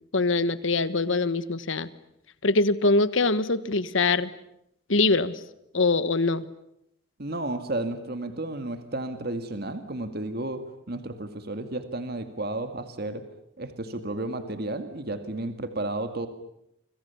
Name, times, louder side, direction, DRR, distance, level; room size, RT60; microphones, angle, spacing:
voice 1, 0.1-1.9 2.4-4.3 4.9-5.4 5.7-6.5, left 3 dB, 70° left, 15 dB, 1.3 m, -23 dB
voice 2, 7.2-13.2 13.6-16.3, right 2 dB, 50° right, 8 dB, 2.1 m, -32 dB
29.5 x 26.5 x 7.1 m, 0.76 s
head